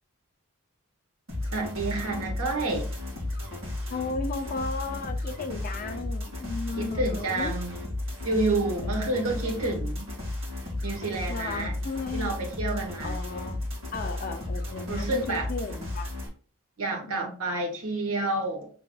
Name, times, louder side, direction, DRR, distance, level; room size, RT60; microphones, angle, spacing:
sound 1, 1.3-16.3, left 1 dB, 60° right, 1.9 m, -34 dB
voice 1, 1.5-2.9 6.7-7.8 8.2-10.1 10.8-11.7 12.1-13.2 14.9-15.5 16.8-18.7, right 2 dB, 80° right, 1.3 m, -29 dB
voice 2, 3.9-7.5 11.3-12.3 13.0-13.6 13.9-16.1 17.0-17.4, left 3 dB, 40° left, 0.4 m, -35 dB
6.2 x 3.4 x 2.3 m
head